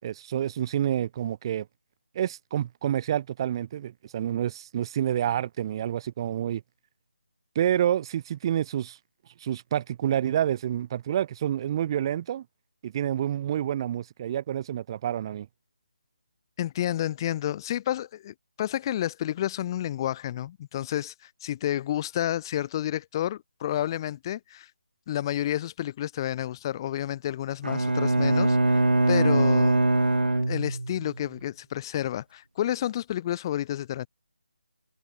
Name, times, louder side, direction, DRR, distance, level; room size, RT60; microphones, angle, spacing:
voice 1, 0.0-1.7 2.1-6.6 7.5-9.0 9.4-12.4 12.8-15.5, right 10 dB, 30° right, 5.0 m, -28 dB
voice 2, 16.6-24.7 25.1-28.8 29.1-29.8 30.5-34.1, left 12 dB, 25° left, 6.9 m, -30 dB
Bowed string instrument, 27.6-31.2, right 2 dB, 80° right, 4.0 m, -22 dB
figure-of-eight pair, 155°, 5 cm